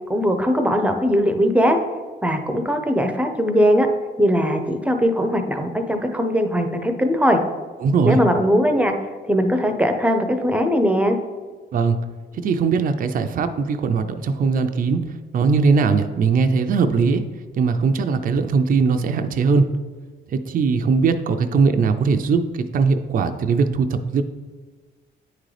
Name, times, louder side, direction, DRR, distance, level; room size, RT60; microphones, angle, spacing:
voice 1, 0.1-1.8 2.2-3.9 4.2-7.4 8.0-8.9 9.3-11.2, equal, 5° right, 5 dB, 0.6 m, -19 dB
voice 2, 7.8-8.2 11.7-12.0 12.4-15.0 15.3-17.2 17.5-19.7 20.3-24.2, right 5 dB, 45° right, 7 dB, 0.4 m, -20 dB
9.0 x 3.8 x 3.3 m, 1.4 s
cardioid pair, 90°, 20 cm